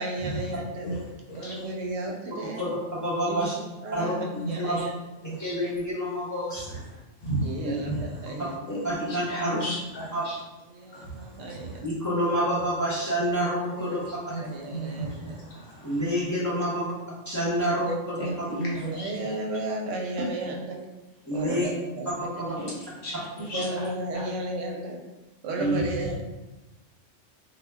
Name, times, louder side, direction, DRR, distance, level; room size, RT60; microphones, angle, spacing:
voice 1, 0.0-0.9 1.3-2.6 3.3-3.5 3.8-4.9 7.4-8.6 9.6-9.7 10.7-11.8 14.4-15.4 17.6-18.3 18.9-20.8 21.3-22.6 23.3-25.0 25.4-26.1, right 2 dB, 80° right, 1 dB, 0.9 m, -34 dB
voice 2, 0.8-1.7 4.3-4.7 5.2-5.5 6.5-7.5 7.8-8.3 8.7-10.4 10.9-11.8 13.7-16.2 18.2-19.4 22.5-24.3 26.0-26.1, right 1 dB, 55° left, -5 dB, 0.8 m, -35 dB
voice 3, 3.0-3.5 3.9-4.1 4.6-4.8 5.4-6.8 7.6-7.7 8.8-9.5 10.1-10.2 11.8-14.0 15.8-16.9 17.3-18.5 21.2-21.7 22.4-22.5 23.5-23.6 25.6-25.8, equal, 20° left, -9 dB, 0.6 m, -27 dB
2.2 x 2.2 x 3.3 m, 1.1 s
omnidirectional pair, 1.3 m